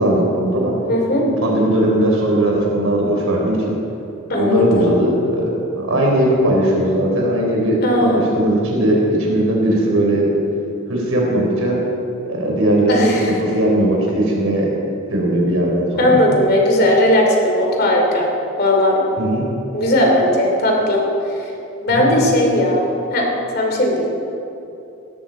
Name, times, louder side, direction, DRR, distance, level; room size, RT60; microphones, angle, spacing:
voice 1, 0.0-0.7 1.4-3.7 4.3-5.5 5.8-10.3 10.9-11.8 12.3-13.1 13.4-14.7 15.1-16.2 19.2-19.4 21.9-22.1, right 1 dB, 80° right, -1 dB, 4.0 m, -18 dB
voice 2, 0.9-1.3 4.3-4.9 7.8-8.3 12.9-13.3 16.0-18.3 18.6-19.1 19.7-21.0 21.4-21.5 21.8-23.3 23.5-24.1, left 1 dB, 50° left, 0 dB, 2.9 m, -17 dB
18.5 x 13.0 x 4.6 m, 2.9 s
head